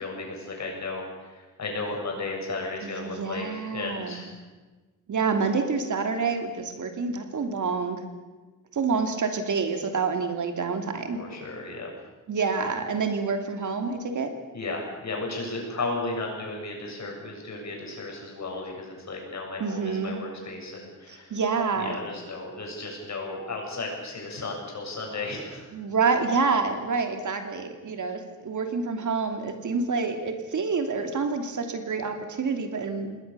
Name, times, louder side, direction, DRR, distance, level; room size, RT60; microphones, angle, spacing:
voice 1, 0.0-4.4 11.1-11.9 14.5-21.4 21.8-25.7, left 3 dB, 60° left, 0 dB, 7.5 m, -34 dB
voice 2, 2.8-4.2 5.1-8.0 8.7-11.2 12.3-14.3 19.6-20.2 21.3-22.0 25.7-33.2, right 4 dB, 65° right, 5 dB, 3.0 m, -27 dB
27.5 x 20.5 x 7.0 m, 1.3 s
wide cardioid pair, 170°, 32 cm